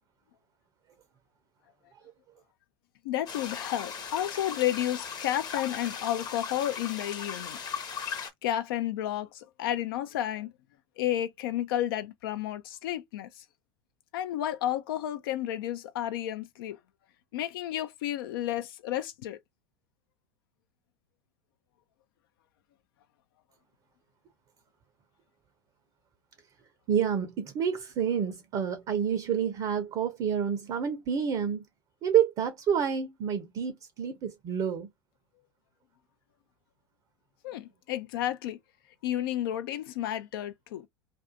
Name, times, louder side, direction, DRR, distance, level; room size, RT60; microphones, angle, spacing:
voice 1, 3.0-7.6 8.4-10.5 11.0-13.4 14.1-16.8 17.3-19.4 37.4-38.6 39.0-40.9, left 12 dB, 65° left, 0.4 m, -31 dB
sound 1, 3.3-8.3, left 6 dB, 30° left, 0.8 m, -38 dB
voice 2, 26.9-31.6 32.0-34.9, right 8 dB, 40° right, 0.6 m, -28 dB
2.5 x 2.3 x 2.5 m
figure-of-eight pair, 80°, 13 cm